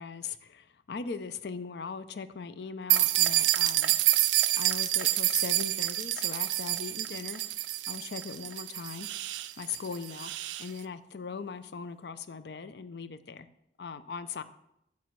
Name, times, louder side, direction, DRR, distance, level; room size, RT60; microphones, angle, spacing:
voice 1, 0.0-4.0 4.5-7.4 7.9-9.1 9.6-10.3 10.6-13.5 13.8-14.4, left 5 dB, 70° left, 12 dB, 0.5 m, -39 dB
sound 1, 2.9-10.7, right 16 dB, 90° right, 0.4 m, -28 dB
9.1 x 7.1 x 3.1 m, 0.80 s
head